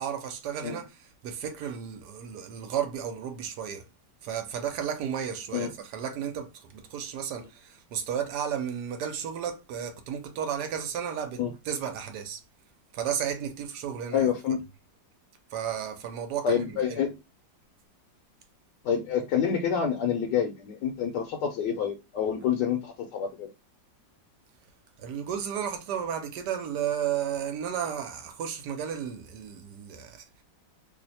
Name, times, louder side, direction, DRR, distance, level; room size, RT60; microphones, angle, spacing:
voice 1, 0.0-3.8 4.2-12.4 12.9-14.6 15.5-17.0 25.0-30.2, right 8 dB, 75° right, 1.2 m, -33 dB
voice 2, 14.1-14.6 16.4-17.1 18.8-23.5, left 7 dB, 75° left, 1.2 m, -27 dB
3.0 x 2.1 x 4.1 m
omnidirectional pair, 2.0 m